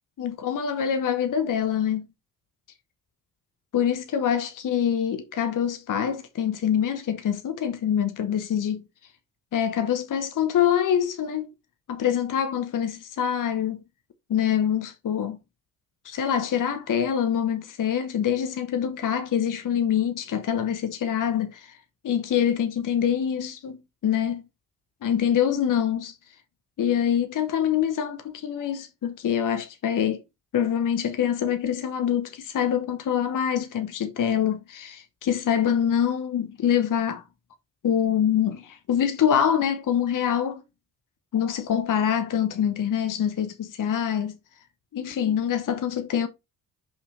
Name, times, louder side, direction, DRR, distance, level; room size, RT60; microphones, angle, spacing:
voice 1, 0.2-2.1 3.7-8.8 9.5-11.5 11.9-13.8 14.3-15.4 16.0-21.8 22.0-24.4 25.0-26.1 26.8-30.2 30.5-37.2 37.8-40.6 41.3-44.4 44.9-46.3, left 9 dB, 40° left, 1.0 m, -25 dB
5.5 x 4.9 x 4.1 m
figure-of-eight pair, 45°, 49 cm